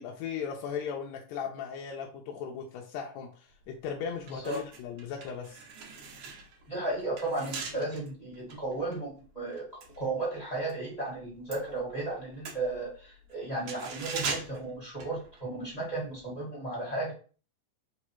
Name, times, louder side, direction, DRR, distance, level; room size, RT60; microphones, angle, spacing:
voice 1, 0.0-5.6, left 7 dB, 80° left, 1 dB, 1.7 m, -37 dB
sound 1, 3.6-3.8 4.2-10.8 11.1-15.7 16.0-16.2, right 4 dB, 65° right, 1.8 m, -41 dB
voice 2, 4.3-4.6 6.7-17.1, right 2 dB, 20° left, -4 dB, 1.1 m, -34 dB
4.8 x 2.3 x 4.4 m, 0.39 s
omnidirectional pair, 3.5 m